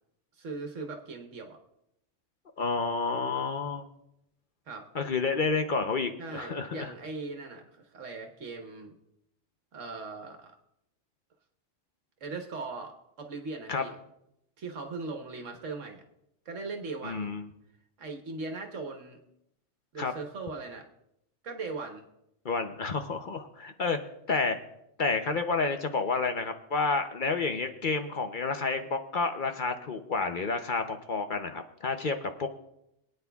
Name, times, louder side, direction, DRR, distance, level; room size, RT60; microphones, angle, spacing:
voice 1, 0.4-1.6 4.7-4.9 6.2-8.9 9.7-10.6 12.2-14.0 14.6-16.0 16.4-17.3 18.0-19.2 19.9-20.9 21.4-22.0, right 3 dB, 80° right, 4 dB, 1.6 m, -39 dB
voice 2, 2.6-3.9 4.9-6.9 13.7-13.8 17.0-17.4 20.0-20.1 22.4-24.0 24.3-24.6 25.0-32.5, left 4 dB, 50° left, 7 dB, 0.8 m, -30 dB
23.0 x 9.2 x 2.3 m, 0.81 s
omnidirectional pair, 1.3 m